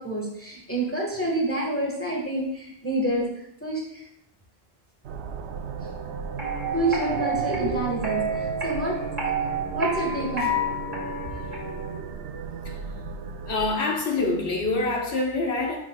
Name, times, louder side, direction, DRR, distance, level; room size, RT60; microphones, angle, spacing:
voice 1, 0.0-4.0 6.7-9.0 9.7-10.5, right 1 dB, 10° left, -3 dB, 1.5 m, -28 dB
sound 1, 5.0-13.7, right 5 dB, 80° right, 0.9 m, -35 dB
sound 2, 6.4-12.0, right 2 dB, 45° right, 2.3 m, -30 dB
voice 2, 13.5-15.8, left 3 dB, 80° left, 0 dB, 1.3 m, -26 dB
11.5 x 4.5 x 2.3 m, 0.79 s
omnidirectional pair, 1.1 m